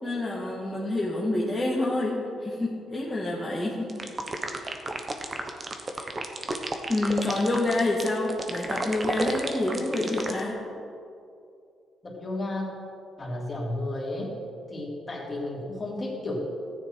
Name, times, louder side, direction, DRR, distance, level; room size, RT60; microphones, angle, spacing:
voice 1, 0.0-3.9 4.4-4.6 5.9-6.1 6.9-10.6, left 2 dB, 15° left, -6 dB, 1.9 m, -28 dB
sound 1, 3.9-10.4, right 2 dB, 30° right, 1.3 m, -31 dB
voice 2, 12.0-12.7 13.2-14.3 14.7-16.4, left 1 dB, 30° left, -4 dB, 3.5 m, -32 dB
14.0 x 9.8 x 4.7 m, 2.5 s
cardioid pair, 90°, 0 cm